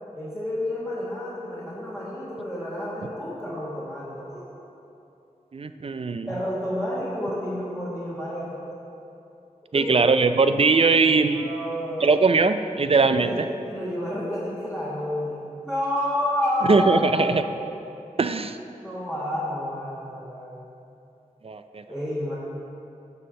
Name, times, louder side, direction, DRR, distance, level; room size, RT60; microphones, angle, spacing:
voice 1, 0.1-4.4 6.3-8.6 9.7-10.0 11.3-12.2 13.0-17.4 18.8-20.6 21.9-22.3, left 1 dB, 5° right, -9 dB, 1.5 m, -30 dB
voice 2, 5.5-6.3 9.7-11.5 12.0-13.5 16.7-17.4 18.2-18.6 21.4-21.8, right 4 dB, 45° right, 10 dB, 0.4 m, -20 dB
7.2 x 4.3 x 6.4 m, 2.7 s
cardioid pair, 45°, 14 cm